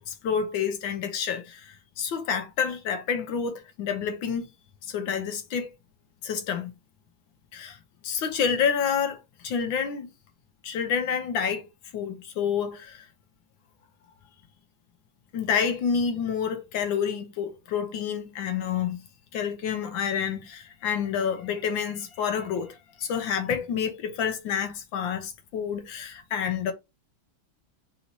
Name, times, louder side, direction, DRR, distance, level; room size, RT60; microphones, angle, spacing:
voice 1, 0.1-4.5 4.9-5.7 6.2-6.7 7.5-7.8 8.0-9.2 9.4-10.1 10.6-11.7 11.9-13.0 15.3-19.0 19.3-26.7, left 7 dB, 75° left, 1.5 m, -28 dB
4.2 x 2.7 x 4.3 m
omnidirectional pair, 2.2 m